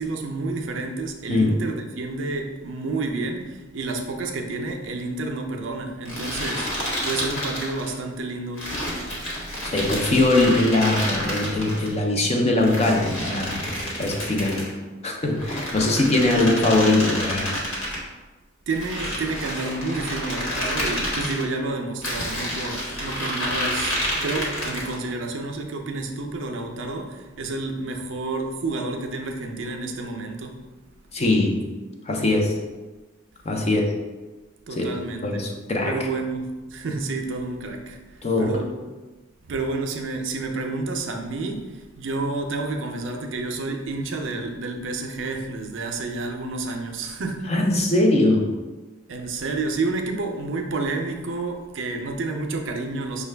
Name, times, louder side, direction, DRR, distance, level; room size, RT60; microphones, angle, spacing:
voice 1, 0.0-6.7 7.0-8.7 16.1-16.6 18.7-30.6 34.7-35.4 35.8-38.7 39.5-47.4 49.1-53.2, right 3 dB, 65° right, 4 dB, 0.5 m, -30 dB
sound 1, 6.1-8.0 8.6-11.9 12.6-14.7 15.3-18.0 18.7-21.4 22.0-25.0, equal, 75° left, 1.2 m, -29 dB
voice 2, 9.6-13.7 14.0-14.8 15.0-17.6 31.1-31.6 32.1-32.6 33.4-33.9 34.7-34.9 35.2-36.0 38.2-38.6 47.5-48.6, left 2 dB, 30° left, 2 dB, 0.5 m, -21 dB
5.6 x 2.2 x 3.3 m, 1.2 s
head